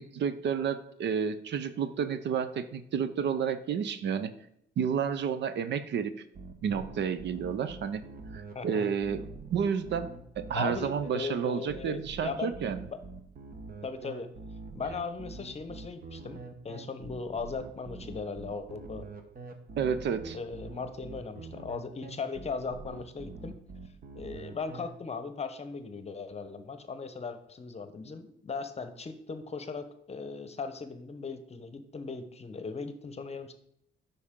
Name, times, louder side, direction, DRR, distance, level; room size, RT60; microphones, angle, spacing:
voice 1, 0.0-4.3 4.8-6.2 6.6-8.0 8.3-12.9 19.8-20.4, right 7 dB, 65° right, 12 dB, 0.6 m, -31 dB
sound 1, 6.3-24.9, right 3 dB, 45° right, 1.1 m, -45 dB
voice 2, 10.5-12.5 12.9-13.0 13.8-14.3 14.7-19.1 20.3-23.6 24.1-33.5, left 4 dB, 30° left, 10 dB, 0.9 m, -38 dB
8.4 x 5.6 x 3.7 m, 0.73 s
cardioid pair, 90°, 20 cm